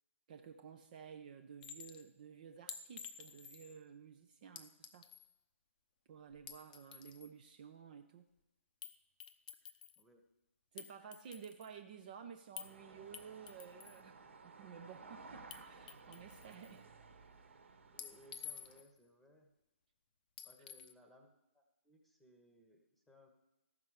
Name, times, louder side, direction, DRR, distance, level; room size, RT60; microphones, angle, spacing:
voice 1, 0.3-5.1 6.1-8.3 10.7-16.9, right 7 dB, 35° right, 6 dB, 0.6 m, -53 dB
Chink clink, 1.6-2.0 2.7-3.8 4.6-5.3 6.3-7.3 8.8-9.0 9.2-10.0 10.8-11.7 12.6-12.7 13.1-14.0 15.5-15.6 15.9-16.7 18.0-19.0 20.4-20.9, left 8 dB, 35° left, 0.7 m, -51 dB
sound 1, 12.6-18.8, right 4 dB, 55° right, 1.3 m, -57 dB
voice 2, 17.9-19.5 20.4-23.3, equal, 5° left, 3 dB, 1.1 m, -64 dB
14.0 x 6.0 x 6.4 m, 0.96 s
figure-of-eight pair, 135°, 8 cm